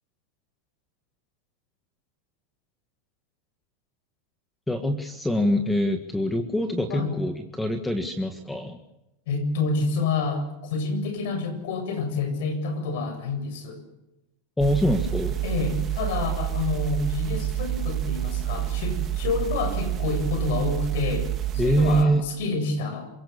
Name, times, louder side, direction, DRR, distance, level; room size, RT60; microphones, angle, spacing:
voice 1, 4.7-8.8 14.6-15.4 21.6-22.2, equal, 5° left, 6 dB, 1.7 m, -24 dB
voice 2, 9.3-13.8 15.4-23.1, left 4 dB, 70° left, 8 dB, 7.5 m, -28 dB
sound 1, 14.6-22.0, right 13 dB, 30° right, 2.3 m, -28 dB
27.0 x 17.5 x 7.1 m, 0.92 s
supercardioid pair, 145°, 0 cm